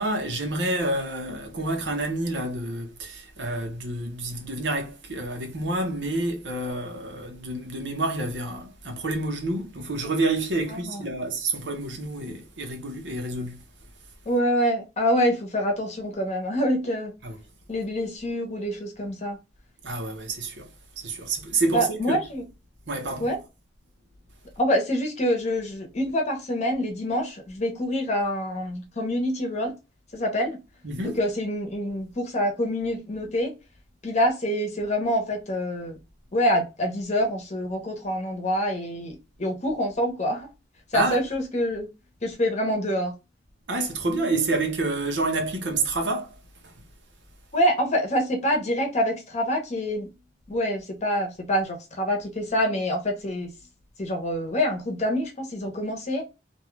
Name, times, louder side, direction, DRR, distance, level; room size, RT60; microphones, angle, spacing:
voice 1, 0.0-13.6 17.2-17.4 19.8-20.7 21.0-22.2 22.9-23.3 30.8-31.2 40.9-41.2 43.7-46.3 46.6-46.7, right 2 dB, 80° right, 0.9 m, -28 dB
voice 2, 14.3-17.1 17.7-19.4 21.7-22.4 23.2-23.4 24.6-29.7 30.1-30.6 31.2-33.5 34.0-36.0 36.3-40.5 40.9-41.9 42.2-43.1 47.5-50.1 50.5-53.5 54.0-56.2, equal, 40° left, 0.8 m, -26 dB
2.7 x 2.3 x 3.1 m
head